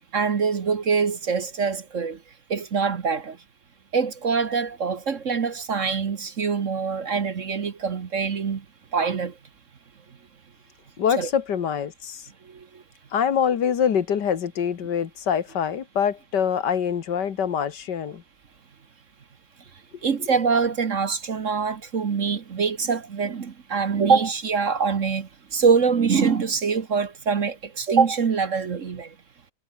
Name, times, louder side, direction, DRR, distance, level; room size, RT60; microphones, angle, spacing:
voice 1, 0.1-2.2 2.5-3.4 3.9-8.6 8.9-9.3 11.2-11.3 12.5-12.7 20.0-29.1, right 5 dB, 45° right, 1.5 m, -24 dB
voice 2, 11.0-12.3 13.1-18.2, left 8 dB, 70° left, 2.0 m, -24 dB
omnidirectional pair, 1.9 m